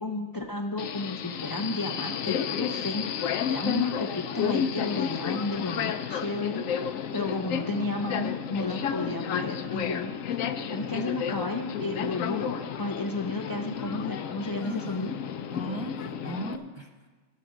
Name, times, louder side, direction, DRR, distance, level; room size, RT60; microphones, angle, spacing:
voice 1, 0.0-6.6 7.1-10.1 10.7-15.1, left 2 dB, 35° left, 3 dB, 0.3 m, -32 dB
Subway metro underground, 0.8-16.6, left 8 dB, 80° left, 1.0 m, -32 dB
voice 2, 14.3-15.2 15.5-17.1, right 1 dB, 25° right, 3 dB, 0.7 m, -38 dB
12.0 x 8.3 x 6.4 m, 1.4 s
omnidirectional pair, 1.4 m